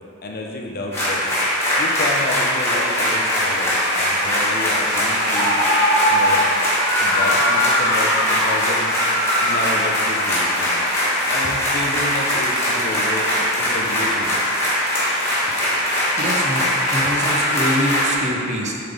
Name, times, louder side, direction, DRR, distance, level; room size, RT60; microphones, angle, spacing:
voice 1, 0.2-1.3 1.8-5.6 6.1-6.4 7.0-8.9 9.4-10.8 11.3-14.3, left 2 dB, 45° left, 0 dB, 0.6 m, -30 dB
sound 1, 0.9-18.1, equal, 15° left, 1.5 m, -20 dB
voice 2, 16.2-18.7, equal, 35° right, -1 dB, 0.7 m, -25 dB
7.4 x 3.8 x 3.5 m, 2.5 s
head